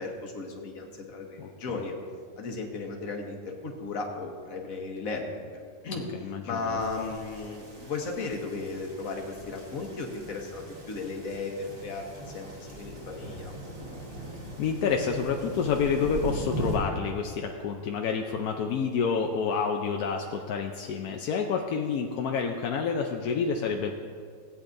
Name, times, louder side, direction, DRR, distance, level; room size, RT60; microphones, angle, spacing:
voice 1, 0.0-1.9 2.4-6.1 6.4-13.5, left 3 dB, 50° left, 1 dB, 1.4 m, -35 dB
voice 2, 5.9-6.8 14.2-14.3 14.6-23.9, left 6 dB, 70° left, 2 dB, 0.9 m, -29 dB
sound 1, 6.8-16.8, right 1 dB, 45° right, 2.3 m, -40 dB
17.0 x 8.5 x 2.6 m, 2.1 s
omnidirectional pair, 2.1 m